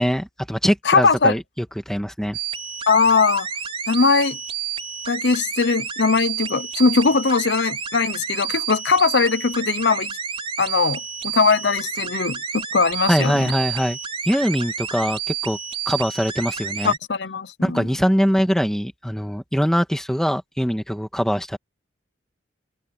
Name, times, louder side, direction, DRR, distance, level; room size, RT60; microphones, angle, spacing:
voice 1, 0.0-2.4 13.1-14.0 14.3-15.6 15.8-16.9 17.6-21.6, equal, 5° left, 1.7 m, -22 dB
voice 2, 0.8-1.3 2.9-3.5 3.9-4.4 5.1-10.2 10.6-13.5 16.8-17.9, left 4 dB, 65° left, 0.8 m, -20 dB
sound 1, 2.3-17.0, right 7 dB, 30° right, 4.7 m, -30 dB
head